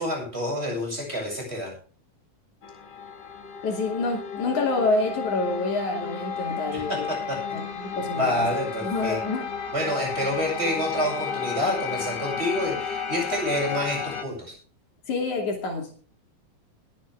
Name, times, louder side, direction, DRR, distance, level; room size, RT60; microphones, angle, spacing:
voice 1, 0.0-1.7 6.7-6.8 7.1-7.6 8.2-9.2 9.7-14.5, left 1 dB, 20° right, -1 dB, 7.8 m, -28 dB
sound 1, 2.6-14.2, left 6 dB, 45° left, 1.8 m, -33 dB
voice 2, 3.6-7.1 7.5-8.5 8.8-9.5 15.1-16.1, left 3 dB, 70° left, 2 dB, 4.2 m, -27 dB
21.0 x 9.4 x 3.6 m, 0.41 s
omnidirectional pair, 3.5 m